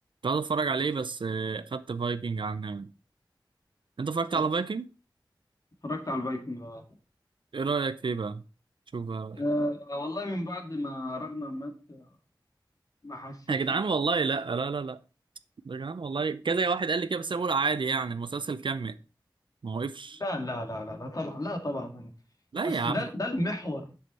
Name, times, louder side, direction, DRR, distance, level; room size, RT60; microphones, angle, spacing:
voice 1, 0.2-2.9 4.0-4.9 7.5-8.4 8.9-9.4 13.5-15.0 15.6-19.0 19.6-20.2 22.5-23.1, right 4 dB, 85° right, 0.5 m, -29 dB
voice 2, 5.8-6.8 9.3-12.0 13.0-13.6 20.2-22.1 22.6-23.9, left 1 dB, 50° left, 1.9 m, -33 dB
7.8 x 7.0 x 4.2 m
wide cardioid pair, 65°, 8 cm